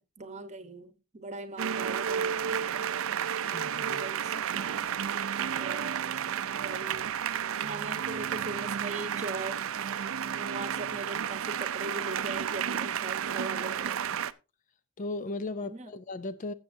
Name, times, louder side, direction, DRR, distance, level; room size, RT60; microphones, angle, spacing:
voice 1, 0.0-2.5 3.8-4.9 5.5-6.1 6.5-7.1 7.6-9.8 10.3-14.2 15.6-15.9, right 2 dB, 30° right, 1.0 m, -40 dB
Concert Ambience Applause Ending, 1.6-14.3, right 8 dB, 70° right, 0.5 m, -32 dB
voice 2, 3.5-4.0 15.0-16.5, left 2 dB, 35° left, 0.4 m, -36 dB
15.0 x 7.0 x 2.7 m
head